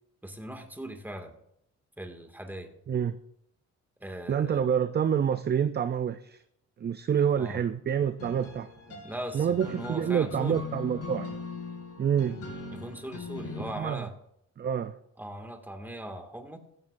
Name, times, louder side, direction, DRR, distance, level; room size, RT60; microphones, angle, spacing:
voice 1, 0.2-1.3 2.0-2.7 4.0-4.7 7.4-7.6 9.0-10.6 12.2-12.5 12.7-14.1 15.2-16.6, right 1 dB, 5° right, 5 dB, 2.1 m, -40 dB
voice 2, 2.9-3.2 4.3-6.4 6.8-9.0 9.3-11.4 12.0-12.4 13.8-14.1 14.6-14.9, right 8 dB, 35° right, 11 dB, 0.5 m, -27 dB
sound 1, 8.2-13.7, left 3 dB, 55° left, 5.8 m, -40 dB
15.5 x 14.5 x 2.6 m, 0.75 s
cardioid pair, 90°, 30 cm